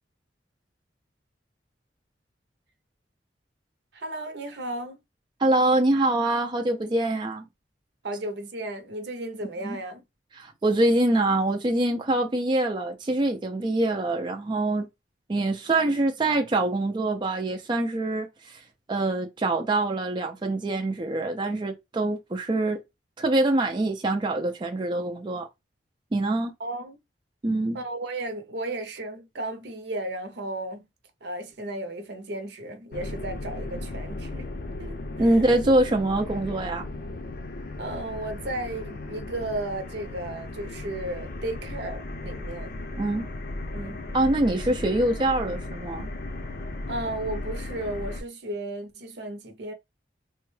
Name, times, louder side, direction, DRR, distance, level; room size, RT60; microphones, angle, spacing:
voice 1, 3.9-5.0 8.0-10.0 26.6-27.0 27.7-30.9 31.2-34.5 34.8-35.3 37.8-42.7 43.7-44.0 46.9-49.7, right 1 dB, 70° right, 0.7 m, -34 dB
voice 2, 5.4-7.4 9.6-9.8 10.4-14.9 15.3-18.6 18.9-22.8 23.2-25.5 26.1-26.5 27.4-27.8 35.2-36.9 43.0-43.3 44.1-46.1, right 2 dB, 25° right, 0.4 m, -24 dB
sound 1, 32.9-48.2, left 2 dB, 60° left, 0.6 m, -36 dB
3.5 x 2.2 x 3.2 m
head